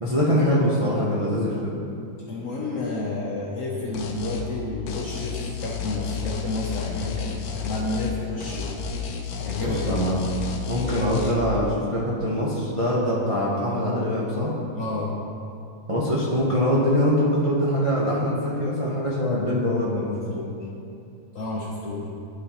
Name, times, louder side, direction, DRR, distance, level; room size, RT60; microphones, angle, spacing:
voice 1, 0.0-1.8 9.6-14.5 15.9-20.5, equal, 50° right, -7 dB, 0.4 m, -23 dB
voice 2, 2.3-8.7 9.4-10.0 14.7-15.2 21.3-22.1, left 2 dB, 65° left, -4 dB, 0.8 m, -30 dB
sound 1, 3.9-4.5 4.9-8.2 8.4-11.3, left 7 dB, 80° left, 1.4 m, -31 dB
11.0 x 4.2 x 2.9 m, 2.6 s
omnidirectional pair, 2.1 m